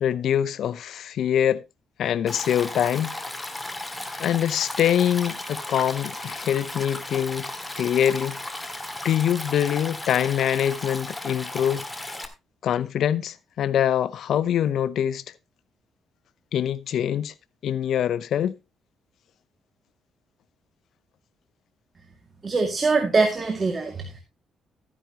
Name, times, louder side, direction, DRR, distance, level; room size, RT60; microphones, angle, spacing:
voice 1, 0.0-1.6 2.0-3.2 4.2-7.5 7.8-8.4 9.0-11.8 12.6-15.2 16.5-17.3 17.6-18.6, left 10 dB, 70° left, 0.7 m, -24 dB
Stream, 2.3-12.3, left 1 dB, 10° left, 2.0 m, -35 dB
voice 2, 22.4-24.2, right 3 dB, 30° right, 2.2 m, -23 dB
14.0 x 9.8 x 2.9 m
cardioid pair, 90°, 0 cm